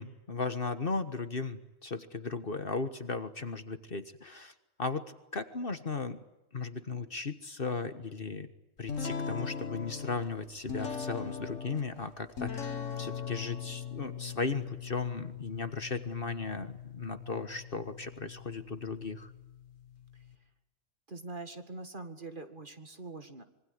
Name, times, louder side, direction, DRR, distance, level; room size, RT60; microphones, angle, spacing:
voice 1, 0.0-4.5 4.8-6.2 6.5-8.5 8.8-19.3, left 4 dB, 45° left, 10 dB, 1.6 m, -36 dB
sound 1, 8.9-20.3, left 6 dB, 70° left, 2.3 m, -41 dB
voice 2, 21.1-23.4, right 3 dB, 40° right, 8 dB, 2.3 m, -43 dB
26.0 x 23.5 x 9.6 m, 0.92 s
omnidirectional pair, 1.4 m